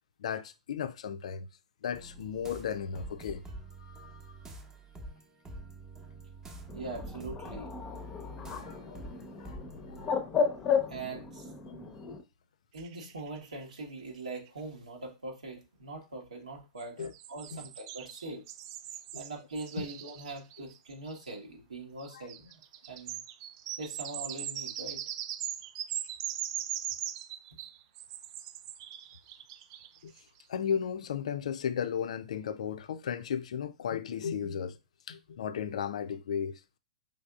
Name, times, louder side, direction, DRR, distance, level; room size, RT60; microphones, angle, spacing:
voice 1, 0.2-1.5 1.8-3.4 3.8-4.4 8.3-9.6 9.9-10.1 11.7-11.8 17.0-17.1 17.5-17.7 19.1-19.2 19.8-19.9 22.1-22.3 30.0-34.8 35.1-36.6, left 8 dB, 60° left, 0.4 m, -35 dB
sound 1, 1.9-10.1, right 1 dB, 15° right, 0.8 m, -46 dB
Bird, 6.7-12.2, left 6 dB, 20° left, 0.7 m, -34 dB
voice 2, 6.7-7.7 10.9-11.8 12.7-18.5 19.1-22.5 22.8-23.2 23.8-25.0, right 2 dB, 75° right, 1.2 m, -42 dB
sound 2, 12.8-13.8 14.2-14.3 14.5-14.6 16.8-21.3 22.0-30.2, right 11 dB, 40° right, 0.4 m, -40 dB
5.1 x 3.5 x 2.3 m
figure-of-eight pair, 105°, 4 cm